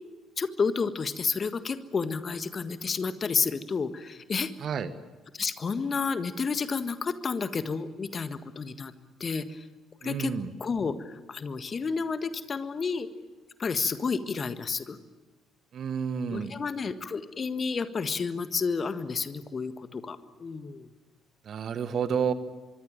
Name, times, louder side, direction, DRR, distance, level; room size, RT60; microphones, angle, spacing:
voice 1, 0.4-4.5 5.4-8.9 9.2-9.6 10.0-10.3 10.6-13.1 13.6-15.0 16.3-20.9, left 5 dB, 35° left, 11 dB, 1.7 m, -30 dB
voice 2, 4.6-4.9 10.0-10.5 15.7-16.5 21.5-22.3, right 7 dB, 45° right, 13 dB, 1.5 m, -30 dB
24.5 x 23.5 x 9.0 m, 1.3 s
figure-of-eight pair, 45°, 0 cm